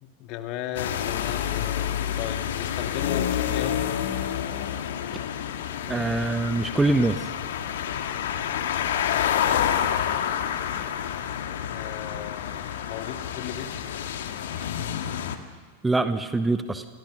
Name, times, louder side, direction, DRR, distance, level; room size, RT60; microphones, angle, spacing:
voice 1, 0.0-1.9 2.2-3.9 9.8-10.1 11.7-13.7, left 10 dB, 40° left, 6 dB, 2.2 m, -36 dB
sound 1, 0.8-15.4, left 9 dB, 60° left, 1.8 m, -28 dB
voice 2, 5.9-7.3 15.8-16.9, right 2 dB, 10° right, 10 dB, 1.2 m, -24 dB
28.5 x 25.5 x 6.7 m, 1.4 s
figure-of-eight pair, 90°, 0 cm